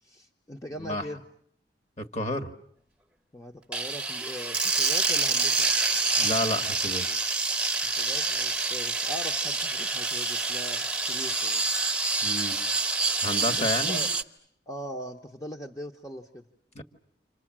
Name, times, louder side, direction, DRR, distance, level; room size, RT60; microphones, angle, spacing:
voice 1, 0.0-1.2 3.3-5.7 7.8-11.6 13.5-14.1 14.7-16.4, equal, 20° left, 2 dB, 1.2 m, -41 dB
voice 2, 2.0-2.5 6.2-7.1 12.2-12.6 13.2-14.0 16.8-16.9, left 1 dB, 40° left, 6 dB, 2.0 m, -30 dB
sound 1, 3.7-14.2, right 3 dB, 5° right, 1.1 m, -27 dB
29.0 x 27.0 x 7.6 m, 0.69 s
head